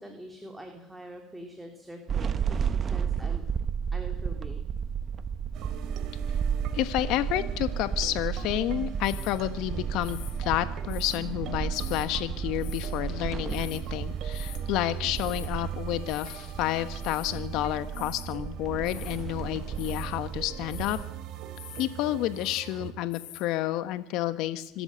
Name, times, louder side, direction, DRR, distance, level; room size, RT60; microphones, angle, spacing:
voice 1, 0.0-2.6 2.9-3.5 3.9-4.7, equal, 5° right, 2 dB, 3.5 m, -44 dB
sound 1, 2.1-21.0, right 7 dB, 35° right, 1.2 m, -33 dB
sound 2, 5.5-22.9, right 10 dB, 60° right, 2.7 m, -41 dB
voice 2, 6.7-21.0 21.8-24.8, left 14 dB, 70° left, 11 dB, 1.3 m, -30 dB
sound 3, 9.0-9.5 10.0-11.2 11.7-12.1 12.6-13.0 13.3-13.8 14.3-14.6 15.1-15.6 15.9-16.5 17.0-17.4 17.9-18.4 18.8-19.3 19.7-20.2 20.7-21.1 21.5-21.9 22.2-22.7 23.1-23.5, left 15 dB, 85° left, 2.0 m, -46 dB
26.0 x 13.0 x 8.0 m, 0.84 s
supercardioid pair, 100°, 0 cm